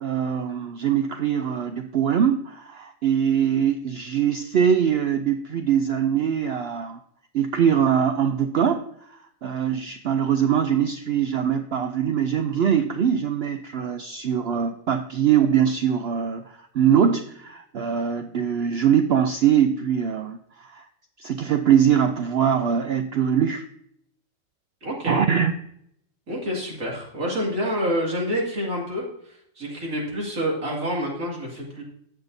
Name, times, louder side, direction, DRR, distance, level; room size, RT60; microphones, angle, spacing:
voice 1, 0.0-7.0 7.3-20.9 21.2-23.6 25.1-25.5, right 8 dB, 60° right, 7 dB, 0.7 m, -22 dB
voice 2, 24.8-25.2 26.3-31.9, equal, 85° right, -3 dB, 2.9 m, -28 dB
16.0 x 5.7 x 2.6 m, 0.72 s
omnidirectional pair, 1.4 m